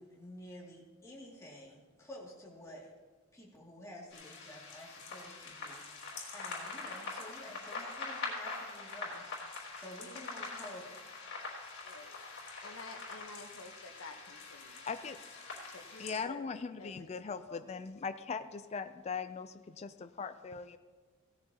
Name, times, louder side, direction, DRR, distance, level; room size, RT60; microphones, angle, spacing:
voice 1, 0.0-2.9 3.3-10.9, left 1 dB, 15° left, -4 dB, 2.3 m, -51 dB
sound 1, 4.1-16.2, left 3 dB, 55° left, 3.4 m, -44 dB
voice 2, 11.8-12.2 12.6-14.9 15.7-16.5 16.8-17.1 17.5-17.6, left 3 dB, 85° left, 5 dB, 1.1 m, -50 dB
voice 3, 14.9-15.6 16.0-20.8, left 5 dB, 30° left, 10 dB, 0.4 m, -40 dB
17.0 x 13.5 x 2.9 m, 1.4 s
head